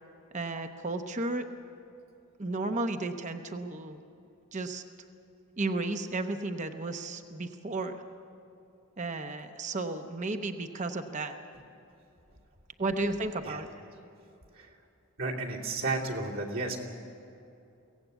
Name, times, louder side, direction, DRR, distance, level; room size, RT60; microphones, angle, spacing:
voice 1, 0.3-1.4 2.4-4.0 4.5-4.8 5.6-8.0 9.0-11.4 12.8-13.7, right 2 dB, 35° right, 7 dB, 0.8 m, -33 dB
voice 2, 15.2-16.8, right 3 dB, 60° right, -3 dB, 2.8 m, -32 dB
23.0 x 17.0 x 8.1 m, 2.8 s
head